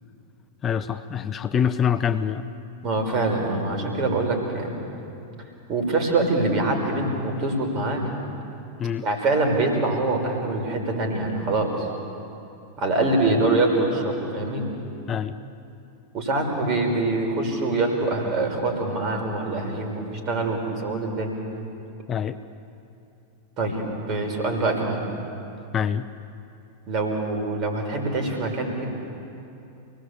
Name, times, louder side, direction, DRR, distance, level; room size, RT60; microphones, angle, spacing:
voice 1, 0.6-2.5 8.8-9.0 13.4-13.5 15.1-15.4 22.1-22.4 25.7-26.0, left 8 dB, 25° left, 11 dB, 0.9 m, -25 dB
voice 2, 2.8-4.8 5.7-8.0 9.0-11.9 12.8-14.6 16.1-21.3 23.6-25.0 26.9-28.9, right 2 dB, 35° right, 3 dB, 5.9 m, -24 dB
29.5 x 19.5 x 8.4 m, 2.7 s
figure-of-eight pair, 90°, 0 cm